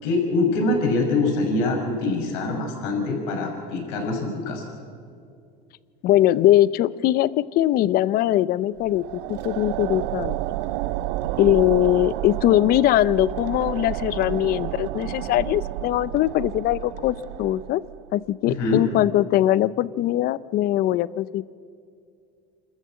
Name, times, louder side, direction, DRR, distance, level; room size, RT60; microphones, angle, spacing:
voice 1, 0.0-4.6 18.4-18.8, left 3 dB, 80° left, 1 dB, 5.9 m, -24 dB
voice 2, 6.0-10.4 11.4-17.8 18.1-21.4, left 13 dB, 50° left, 19 dB, 0.6 m, -21 dB
sound 1, 8.8-18.1, right 16 dB, 80° right, 0.6 m, -31 dB
28.0 x 14.0 x 7.6 m, 2.4 s
supercardioid pair, 125°, 20 cm